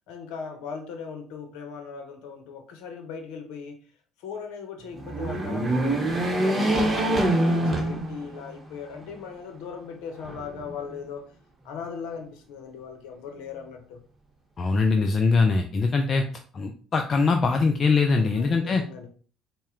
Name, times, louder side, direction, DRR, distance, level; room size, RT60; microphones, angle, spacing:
voice 1, 0.1-3.8 4.2-11.2 11.6-14.0 18.1-19.1, left 6 dB, 75° left, 4 dB, 0.7 m, -39 dB
sound 1, 4.9-8.5 9.0-9.1 10.2-11.0, right 1 dB, 25° right, 1.1 m, -25 dB
voice 2, 14.6-16.2 16.5-18.8, left 4 dB, 40° left, 4 dB, 0.4 m, -22 dB
4.1 x 2.2 x 3.6 m, 0.41 s
hypercardioid pair, 65°, 0 cm